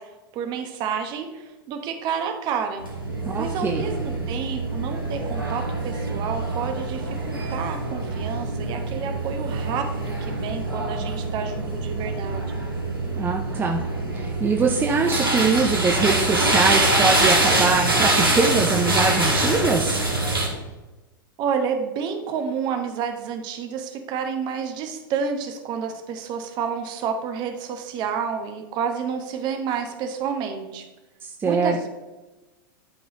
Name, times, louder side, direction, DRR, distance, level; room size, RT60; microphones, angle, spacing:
voice 1, 0.0-2.9 3.4-12.6 21.4-30.8 31.4-31.9, right 6 dB, 40° right, 6 dB, 1.0 m, -30 dB
sound 1, 2.8-20.5, right 2 dB, 90° right, 1.7 m, -25 dB
voice 2, 3.3-3.8 13.2-13.8 14.1-20.0 31.2-31.9, right 4 dB, 20° right, 2 dB, 0.6 m, -23 dB
sound 2, 15.3-20.7, left 2 dB, 60° left, 1.6 m, -30 dB
11.5 x 3.9 x 3.0 m, 1.1 s
figure-of-eight pair, 90°, 12 cm